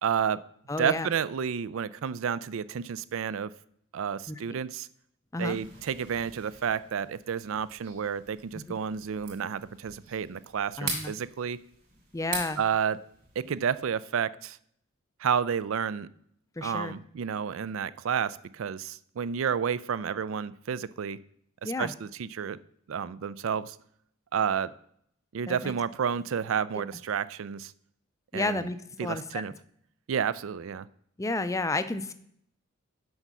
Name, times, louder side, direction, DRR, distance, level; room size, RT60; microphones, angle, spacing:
voice 1, 0.0-0.4 0.8-3.5 3.9-4.9 5.4-11.6 12.6-13.0 13.4-14.6 15.2-16.1 16.6-21.2 21.6-22.6 22.9-23.8 24.3-24.7 25.3-27.7 28.3-28.7 29.0-29.5 30.1-30.9, right 7 dB, 65° right, 18 dB, 0.4 m, -30 dB
voice 2, 0.7-1.1 4.3-4.4 5.3-5.6 8.5-8.6 10.8-11.1 12.1-12.6 16.6-16.9 21.6-21.9 25.5-25.7 28.3-29.4 31.2-32.1, left 2 dB, 15° left, 11 dB, 0.4 m, -31 dB
sound 1, 5.5-13.9, right 4 dB, 40° right, 3.0 m, -42 dB
7.9 x 5.5 x 6.0 m, 0.68 s
head